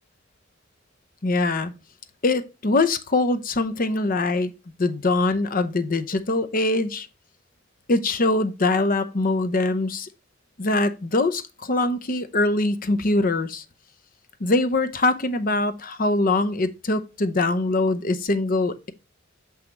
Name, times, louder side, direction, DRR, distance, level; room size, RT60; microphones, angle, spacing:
voice 1, 1.2-1.7 2.2-4.5 4.8-7.1 7.9-10.1 10.6-13.6 14.4-18.9, left 2 dB, 45° left, 0.7 m, -23 dB
7.0 x 5.6 x 3.1 m
head